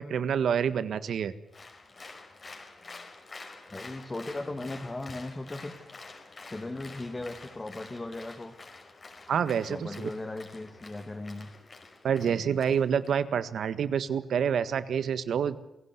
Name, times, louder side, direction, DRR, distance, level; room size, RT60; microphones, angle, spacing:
voice 1, 0.0-1.3 9.3-10.1 12.0-15.6, right 7 dB, 75° right, 13 dB, 1.7 m, -27 dB
Applause, 1.5-13.1, left 3 dB, 40° left, 5.3 m, -48 dB
voice 2, 3.7-5.7 6.5-8.5 9.7-11.5, left 2 dB, 25° left, 4 dB, 2.7 m, -37 dB
27.5 x 16.5 x 9.8 m, 0.88 s
cardioid pair, 75°, 0 cm